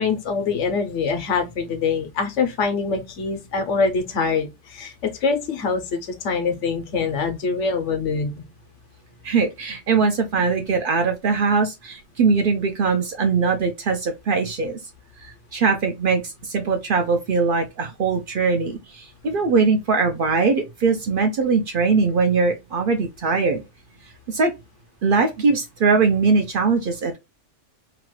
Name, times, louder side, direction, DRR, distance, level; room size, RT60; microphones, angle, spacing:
voice 1, 0.0-8.4, left 4 dB, 75° left, 1.1 m, -24 dB
voice 2, 9.2-14.8 15.2-23.6 24.3-24.5 25.0-27.2, right 4 dB, 60° right, 0.6 m, -21 dB
2.9 x 2.3 x 3.0 m
omnidirectional pair, 1.2 m